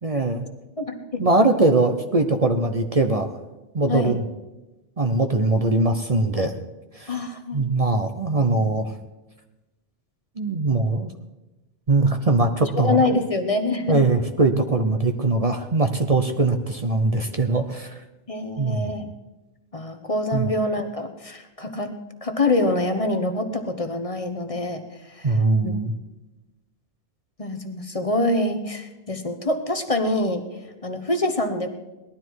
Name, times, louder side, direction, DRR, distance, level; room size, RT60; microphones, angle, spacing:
voice 1, 0.0-0.5 1.2-3.4 3.7-4.2 5.0-6.5 7.0-7.2 7.5-8.9 10.4-11.1 11.9-13.0 13.9-18.0 18.6-18.9 20.3-20.5 25.2-25.9, right 2 dB, 40° right, 6 dB, 0.9 m, -21 dB
voice 2, 0.8-1.2 3.9-4.2 7.1-7.6 12.8-14.0 18.3-19.1 19.7-21.9 22.2-24.8 25.1-25.4 25.6-25.7 27.4-30.4 30.8-31.7, left 2 dB, 35° left, 7 dB, 1.1 m, -25 dB
18.5 x 12.0 x 4.7 m, 1.1 s
omnidirectional pair, 1.1 m